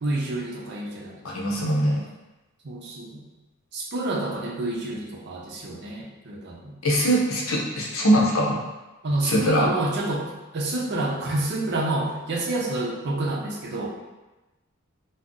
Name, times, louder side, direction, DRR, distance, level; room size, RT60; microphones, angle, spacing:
voice 1, 0.0-1.2 1.5-1.7 2.6-3.2 3.7-6.8 9.0-13.9, right 2 dB, 55° right, -2 dB, 0.5 m, -28 dB
voice 2, 1.2-2.0 6.8-8.6 9.2-9.7, equal, 85° left, -2 dB, 0.6 m, -22 dB
2.5 x 2.0 x 3.6 m, 1.1 s
head